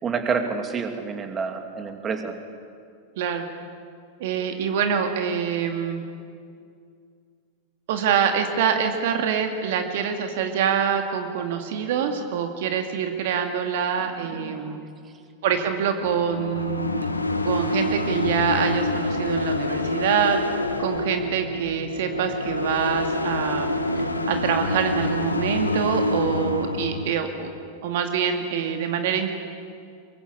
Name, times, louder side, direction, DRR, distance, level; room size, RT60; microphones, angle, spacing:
voice 1, 0.0-2.4 14.4-14.9, right 5 dB, 25° right, 6 dB, 2.7 m, -28 dB
voice 2, 4.2-6.0 7.9-14.7 15.4-17.1 17.4-20.4 20.8-23.8 24.3-27.5 27.8-29.3, right 7 dB, 55° right, 5 dB, 2.3 m, -25 dB
sound 1, 16.0-27.1, left 2 dB, 80° left, 1.8 m, -27 dB
24.5 x 23.0 x 8.6 m, 2.3 s
figure-of-eight pair, 90°, 0 cm